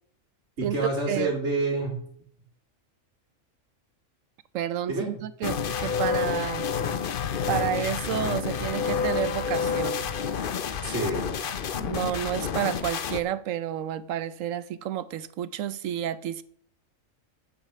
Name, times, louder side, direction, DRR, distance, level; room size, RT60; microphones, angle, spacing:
voice 1, 0.6-2.0 4.9-5.2 10.8-12.0, right 2 dB, 60° right, 3.1 m, -29 dB
voice 2, 4.5-6.6 7.5-10.0 11.8-16.4, right 11 dB, 75° right, 1.0 m, -30 dB
sound 1, 5.4-13.2, left 6 dB, 50° left, 0.7 m, -29 dB
9.0 x 7.4 x 6.7 m
omnidirectional pair, 1.4 m